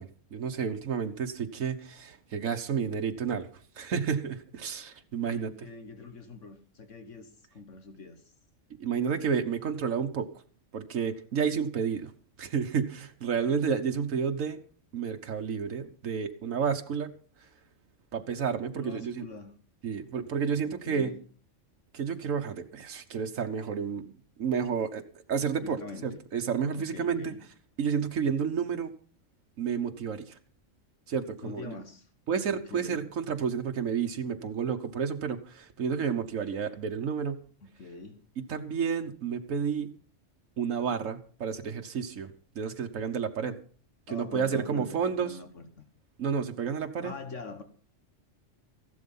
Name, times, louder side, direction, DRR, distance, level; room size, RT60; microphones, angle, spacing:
voice 1, 0.0-3.5 3.8-5.5 8.8-10.3 10.7-12.1 12.4-14.6 14.9-17.1 18.1-19.3 19.8-21.1 21.9-24.0 24.4-25.0 25.3-27.3 27.8-28.9 29.6-30.3 31.1-31.7 32.3-37.4 38.5-39.9 40.6-43.6 44.1-45.3 46.2-47.1, right 6 dB, 85° right, 4 dB, 1.5 m, -31 dB
voice 2, 5.3-8.3 13.3-13.5 18.7-19.5 20.6-21.2 25.6-26.2 26.7-27.4 31.4-32.1 32.5-33.0 37.8-38.2 44.1-45.8 47.0-47.6, left 4 dB, 70° left, 8 dB, 1.6 m, -44 dB
15.0 x 12.0 x 5.5 m, 0.41 s
omnidirectional pair, 1.3 m